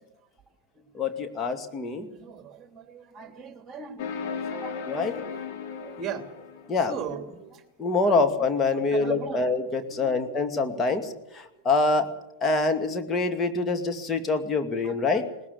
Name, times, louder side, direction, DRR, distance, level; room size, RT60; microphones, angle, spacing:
voice 1, 0.9-2.1 4.9-5.1 6.7-6.9 7.8-12.1 12.4-15.3, left 3 dB, 20° left, 6 dB, 2.2 m, -25 dB
voice 2, 2.0-7.6 8.0-8.4 8.7-9.5 9.9-11.1 11.5-11.6 12.0-12.1 14.8-15.2, right 6 dB, 20° right, 6 dB, 3.1 m, -40 dB
sound 1, 4.0-7.0, left 6 dB, 50° left, 3.3 m, -36 dB
20.5 x 19.0 x 8.1 m, 0.90 s
figure-of-eight pair, 90°, 0 cm